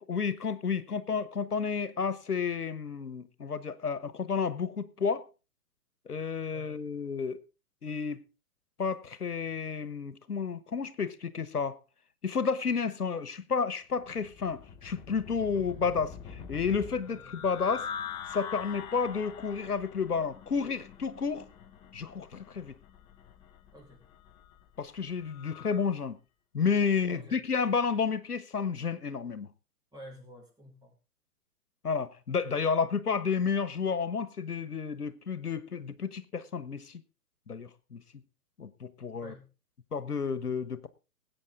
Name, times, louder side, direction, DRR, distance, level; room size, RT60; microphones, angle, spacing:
voice 1, 0.1-5.2 6.1-7.4 7.8-8.2 8.8-11.8 12.2-17.2 17.4-17.9 18.3-21.4 21.9-22.7 24.8-26.2 26.5-29.5 31.8-37.0 37.5-38.0 38.6-39.3 39.9-40.9, left 5 dB, 85° left, 1.3 m, -31 dB
voice 2, 6.5-6.8 15.5-15.9 17.1-17.4 23.7-24.1 27.0-27.4 29.9-31.0 39.2-39.5, equal, 10° right, 4.9 m, -50 dB
sound 1, 14.0-25.8, left 7 dB, 10° left, 0.5 m, -44 dB
20.0 x 8.8 x 3.7 m
figure-of-eight pair, 125°, 45 cm